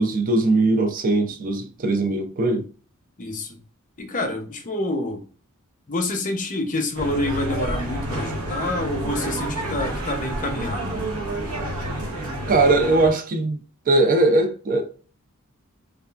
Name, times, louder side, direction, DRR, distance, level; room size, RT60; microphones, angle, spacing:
voice 1, 0.0-2.7 12.5-13.6 13.9-14.9, right 2 dB, 40° right, 0.4 m, -20 dB
voice 2, 3.2-3.6 4.0-5.2 5.9-11.0, left 1 dB, 35° left, 0.6 m, -27 dB
sound 1, 6.9-13.1, right 1 dB, 75° right, 0.9 m, -29 dB
3.2 x 2.3 x 2.3 m
head